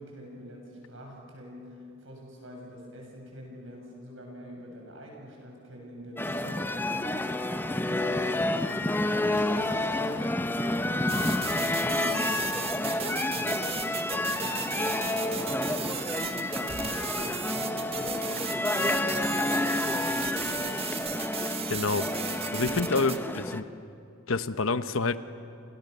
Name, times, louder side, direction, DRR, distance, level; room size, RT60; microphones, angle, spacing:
voice 1, 0.0-7.1 7.6-20.9, equal, 65° right, 0 dB, 7.4 m, -45 dB
sound 1, 6.2-23.6, left 1 dB, 10° left, 0.7 m, -29 dB
Slam, 9.3-12.8 13.1-13.2, equal, 10° right, 5.9 m, -53 dB
sound 2, 11.1-23.2, right 7 dB, 30° right, 1.3 m, -37 dB
voice 2, 21.7-22.1 22.5-23.7 24.3-25.2, left 3 dB, 70° left, 12 dB, 1.0 m, -27 dB
29.5 x 29.0 x 6.8 m, 2.7 s
head